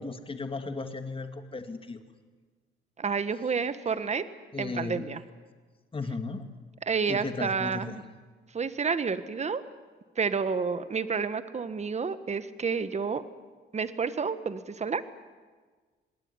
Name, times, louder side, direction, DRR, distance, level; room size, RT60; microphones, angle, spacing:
voice 1, 0.0-2.0 4.5-5.1 5.9-6.5 7.1-8.0, left 3 dB, 25° left, 7 dB, 2.6 m, -35 dB
voice 2, 3.0-4.3 4.6-5.2 6.9-8.0 8.5-9.6 10.2-13.2 13.7-15.0, right 5 dB, 35° right, 13 dB, 1.5 m, -30 dB
26.5 x 20.0 x 9.7 m, 1.4 s
cardioid pair, 90°, 20 cm